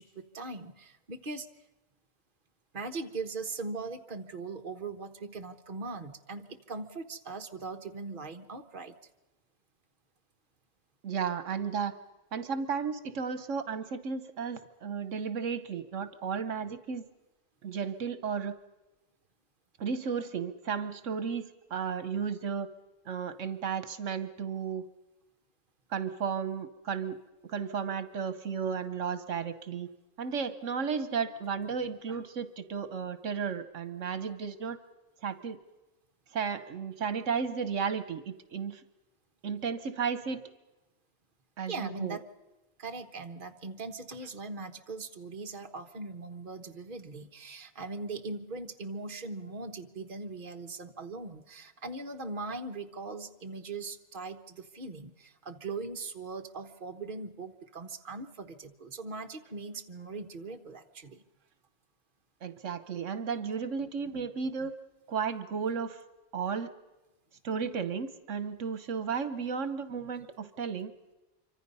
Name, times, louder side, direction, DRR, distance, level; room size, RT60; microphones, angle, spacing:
voice 1, 0.0-1.6 2.7-9.0 41.7-42.2 42.8-61.2, right 3 dB, 45° right, 6 dB, 1.4 m, -40 dB
voice 2, 11.0-11.9 12.3-17.0 17.6-18.6 19.8-22.7 23.1-24.8 25.9-27.2 27.4-29.9 30.2-34.8 35.2-35.6 36.3-38.8 39.4-40.4 41.6-42.2 62.4-64.7 65.1-66.0 66.3-66.7 67.4-70.9, right 6 dB, 75° right, 11 dB, 1.3 m, -34 dB
27.0 x 24.5 x 5.5 m, 1.1 s
omnidirectional pair, 1.3 m